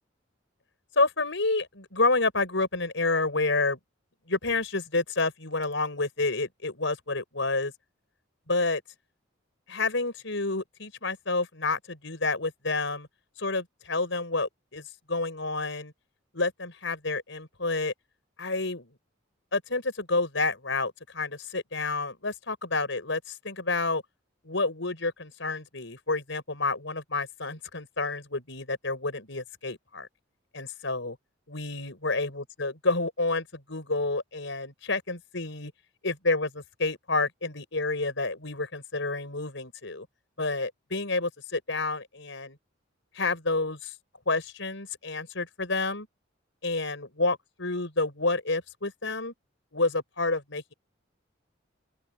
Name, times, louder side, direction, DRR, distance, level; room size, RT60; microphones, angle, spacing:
voice 1, 0.9-3.8 4.3-7.7 8.5-8.8 9.7-13.1 13.4-14.8 15.1-15.9 16.3-17.9 18.4-18.9 19.5-24.0 24.4-30.1 30.5-31.2 31.5-35.7 36.0-40.1 40.4-42.6 43.1-43.9 44.3-46.1 46.6-49.3 49.7-50.7, left 3 dB, 65° left, 6.8 m, -29 dB
open air
head